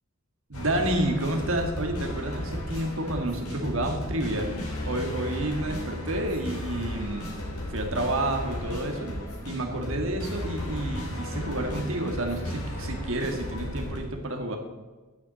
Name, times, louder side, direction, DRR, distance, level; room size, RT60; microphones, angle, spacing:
sound 1, 0.5-14.0, equal, 85° left, 3.5 m, -34 dB
voice 1, 0.5-4.5 4.9-7.3 7.7-9.1 9.5-14.6, right 1 dB, 65° right, 4 dB, 1.9 m, -30 dB
9.5 x 7.0 x 7.7 m, 1.2 s
head